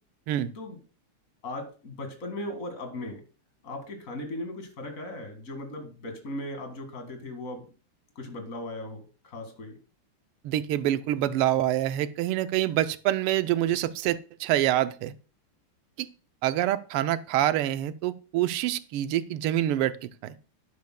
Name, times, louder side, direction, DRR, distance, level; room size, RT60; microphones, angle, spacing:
voice 1, 1.4-3.2 3.6-7.6 8.2-9.8, left 1 dB, 40° left, 4 dB, 2.2 m, -37 dB
voice 2, 10.4-15.1 16.0-16.1 16.4-20.3, right 13 dB, 90° right, 13 dB, 1.5 m, -26 dB
11.5 x 11.0 x 2.2 m, 0.36 s
omnidirectional pair, 2.4 m